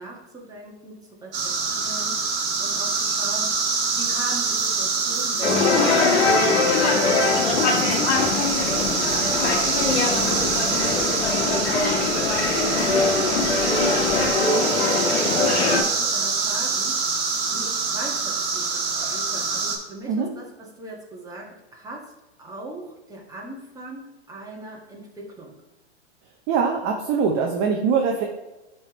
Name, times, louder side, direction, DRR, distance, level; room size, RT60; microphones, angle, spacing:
voice 1, 0.0-2.3 2.6-3.6 3.9-7.2 7.6-7.9 8.5-9.2 9.8-11.3 11.5-12.0 12.7-17.0 17.5-20.5 20.7-22.1 22.4-25.6, right 2 dB, 10° right, -2 dB, 1.4 m, -39 dB
sound 1, 1.3-19.8, right 4 dB, 55° right, 1.4 m, -25 dB
sound 2, 5.4-15.8, left 4 dB, 60° left, 1.3 m, -22 dB
sound 3, 8.2-14.3, left 5 dB, 35° left, 1.0 m, -37 dB
voice 2, 26.5-28.2, right 5 dB, 30° right, 2 dB, 0.6 m, -22 dB
10.5 x 3.5 x 3.0 m, 1.1 s
hypercardioid pair, 115°, 34 cm